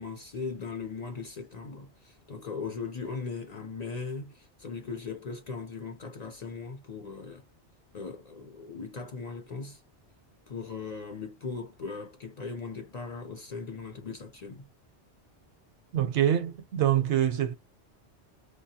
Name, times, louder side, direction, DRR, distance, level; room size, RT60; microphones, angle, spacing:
voice 1, 0.0-7.4 7.9-9.8 10.5-14.7, left 4 dB, 50° left, 0.5 m, -39 dB
voice 2, 15.9-17.6, right 10 dB, 85° right, 1.0 m, -25 dB
2.6 x 2.2 x 2.7 m
omnidirectional pair, 1.1 m